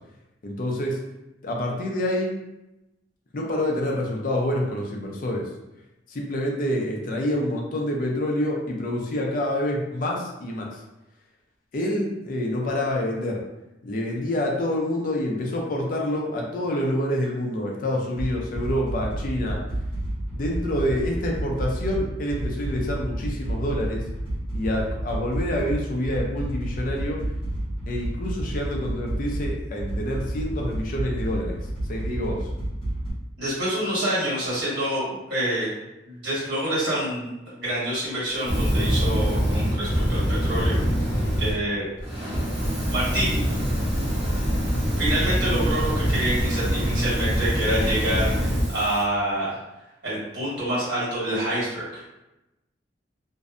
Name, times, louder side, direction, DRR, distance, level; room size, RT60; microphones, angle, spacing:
voice 1, 0.4-1.0 1.4-2.4 3.3-5.5 6.1-10.8 11.7-13.4 13.8-19.6 20.3-24.0 24.5-27.2 27.9-31.6 31.9-32.5, left 1 dB, 50° left, 0 dB, 0.4 m, -27 dB
sound 1, 18.2-33.1, right 1 dB, 30° left, 0.9 m, -30 dB
voice 2, 33.4-35.7 36.0-37.3 37.6-40.8 41.1-41.8 42.9-43.4 45.0-49.6 50.0-51.8, right 1 dB, 65° right, -8 dB, 1.4 m, -27 dB
Fire, 38.4-41.5 42.0-49.0, equal, 35° right, 0.7 m, -24 dB
2.5 x 2.1 x 2.4 m, 0.95 s
head